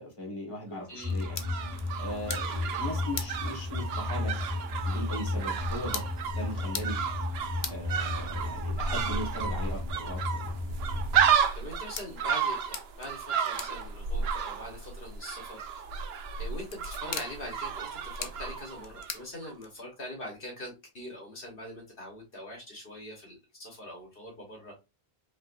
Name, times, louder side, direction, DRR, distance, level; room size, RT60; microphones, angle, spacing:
voice 1, 0.0-1.4 2.0-4.3 4.8-6.0 6.3-7.0 7.7-10.4, left 1 dB, 30° left, 1.7 m, -38 dB
voice 2, 0.9-1.2 11.5-15.8 16.4-24.8, left 1 dB, 60° left, 1.5 m, -43 dB
sound 1, 1.0-20.0, left 6 dB, 90° left, 1.0 m, -45 dB
sound 2, 1.0-11.3, left 2 dB, 25° right, 1.7 m, -34 dB
sound 3, 1.0-19.2 19.4-19.5, right 7 dB, 80° right, 0.8 m, -32 dB
5.1 x 3.0 x 2.5 m
omnidirectional pair, 1.0 m